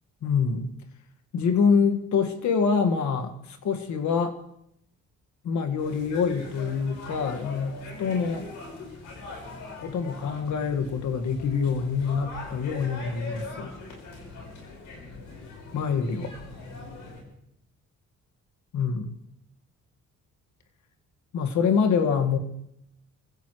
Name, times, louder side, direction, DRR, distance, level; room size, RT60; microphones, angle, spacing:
voice 1, 0.2-0.7 1.3-4.4 5.4-8.5 9.8-13.7 15.7-16.3 18.7-19.1 21.3-22.4, left 6 dB, 70° left, 1.9 m, -25 dB
sound 1, 5.8-17.2, left 3 dB, 85° left, 5.2 m, -41 dB
28.0 x 15.5 x 3.2 m
cardioid pair, 90°, 30 cm